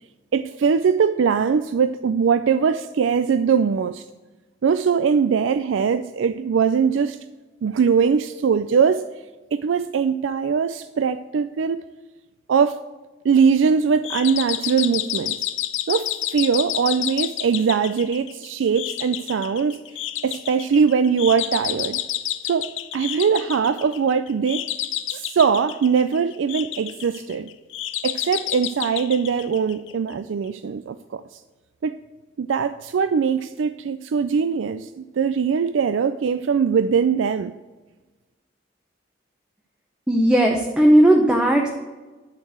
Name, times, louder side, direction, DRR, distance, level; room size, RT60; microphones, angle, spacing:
voice 1, 0.3-4.0 4.6-7.2 7.6-9.0 9.5-11.8 12.5-12.8 13.2-15.4 15.9-19.8 20.2-22.0 22.4-24.6 25.1-27.5 28.0-31.2 31.8-32.0 32.4-37.5, right 6 dB, 90° right, 0.4 m, -21 dB
sound 1, 14.0-30.1, left 13 dB, 90° left, 0.6 m, -30 dB
voice 2, 40.1-41.7, right 1 dB, 5° right, 0.8 m, -16 dB
11.0 x 4.6 x 8.1 m
head